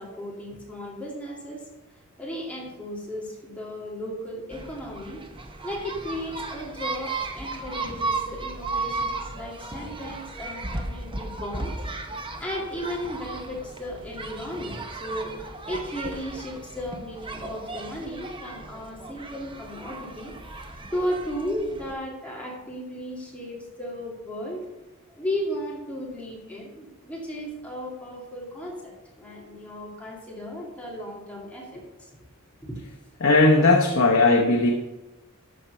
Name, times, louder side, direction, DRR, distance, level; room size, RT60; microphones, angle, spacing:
voice 1, 0.0-1.7 2.2-11.7 12.4-20.3 20.6-24.6 25.1-32.1 33.6-33.7, equal, 5° left, -4 dB, 2.3 m, -35 dB
sound 1, 4.5-21.9, right 3 dB, 20° right, 0.8 m, -35 dB
voice 2, 33.2-34.7, left 2 dB, 60° left, 1 dB, 0.9 m, -18 dB
13.0 x 4.4 x 5.4 m, 1.0 s
head